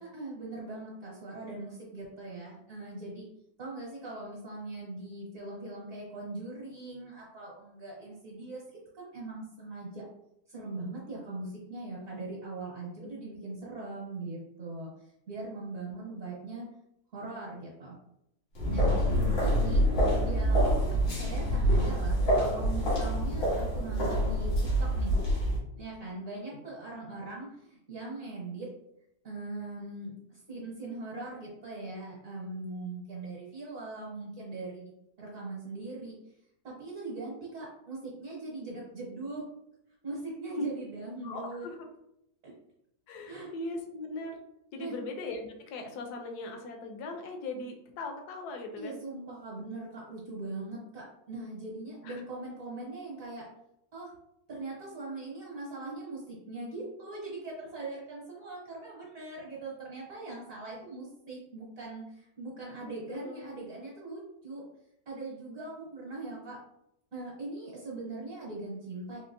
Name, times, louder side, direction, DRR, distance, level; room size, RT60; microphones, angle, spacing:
voice 1, 0.0-3.2 3.6-8.6 8.9-10.0 10.5-14.9 15.3-16.7 17.1-18.0 18.7-18.9 19.4-19.8 20.2-20.7 21.0-24.5 24.8-25.1 25.7-28.7 29.2-36.1 36.6-39.4 40.0-41.6 42.4-42.5 43.2-43.5 44.8-44.9 48.8-53.4 53.9-54.1 54.5-64.6 65.1-66.6 67.1-69.2, right 2 dB, 50° right, -5 dB, 1.3 m, -41 dB
sound 1, 18.6-25.6, equal, 90° left, 2.3 m, -26 dB
voice 2, 41.2-41.9 43.1-44.4 44.7-49.0 52.0-52.2 62.8-63.7, left 2 dB, 70° left, 4 dB, 1.1 m, -39 dB
4.3 x 2.8 x 2.6 m, 0.79 s
omnidirectional pair, 2.0 m